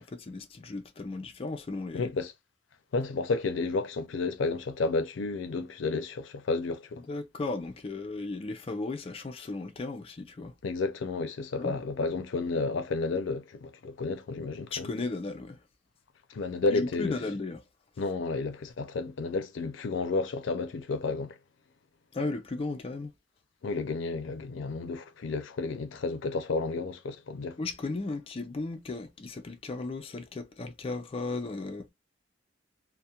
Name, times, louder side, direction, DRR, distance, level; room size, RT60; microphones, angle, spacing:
voice 1, 0.0-2.1 6.9-10.6 11.6-11.8 14.7-15.6 16.7-17.6 22.1-23.1 27.6-31.9, left 3 dB, 30° left, 0.4 m, -35 dB
voice 2, 1.9-2.3 2.9-7.0 10.6-14.9 16.3-17.2 18.0-21.4 23.6-27.6, left 3 dB, 90° left, 0.4 m, -31 dB
2.3 x 2.1 x 2.7 m
head